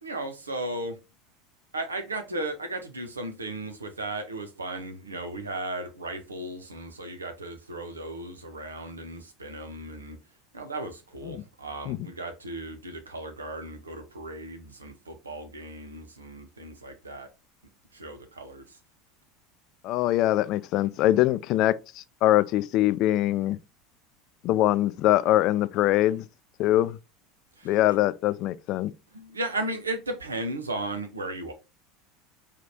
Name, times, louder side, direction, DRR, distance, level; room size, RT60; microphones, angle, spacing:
voice 1, 0.0-1.0 1.7-10.2 10.5-17.3 17.9-18.8 27.6-28.0 29.1-31.5, right 2 dB, 85° right, 0.8 m, -35 dB
voice 2, 19.8-23.6 24.4-26.2 26.6-27.0 27.6-28.9, left 14 dB, 50° left, 0.3 m, -23 dB
4.9 x 3.3 x 2.8 m
figure-of-eight pair, 75°, 0 cm